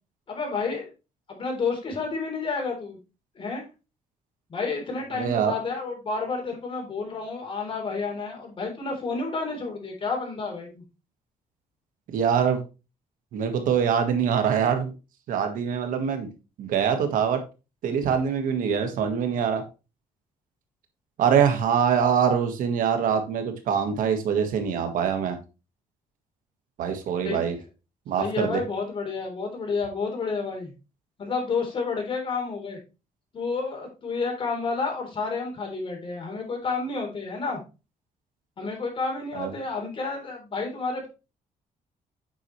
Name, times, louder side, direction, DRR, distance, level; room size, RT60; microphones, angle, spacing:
voice 1, 0.3-0.9 1.3-3.0 3.4-3.6 4.5-10.8 27.2-27.4 28.2-30.7 31.2-32.8 33.3-37.6 38.6-41.1, left 4 dB, 40° left, 1 dB, 3.6 m, -30 dB
voice 2, 5.1-5.6 12.1-12.6 13.3-14.9 15.3-16.3 16.6-17.4 17.8-19.6 21.2-25.4 26.8-27.6 28.1-28.6 39.3-39.5, right 7 dB, 75° right, 6 dB, 1.6 m, -24 dB
8.7 x 5.8 x 3.2 m, 0.30 s
cardioid pair, 125°, 14 cm